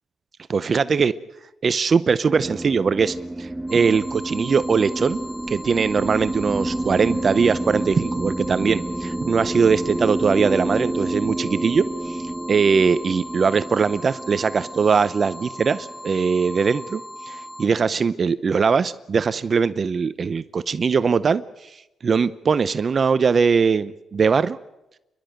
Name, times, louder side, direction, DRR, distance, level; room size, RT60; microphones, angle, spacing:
voice 1, 0.5-1.1 1.6-5.2 5.5-21.7 22.0-24.6, right 5 dB, 45° right, 15 dB, 0.7 m, -21 dB
sound 1, 2.3-16.9, right 1 dB, 10° right, 1.2 m, -29 dB
sound 2, 3.7-17.7, left 1 dB, 5° left, 1.1 m, -39 dB
29.0 x 12.0 x 9.2 m, 0.96 s
cardioid pair, 85°, 0 cm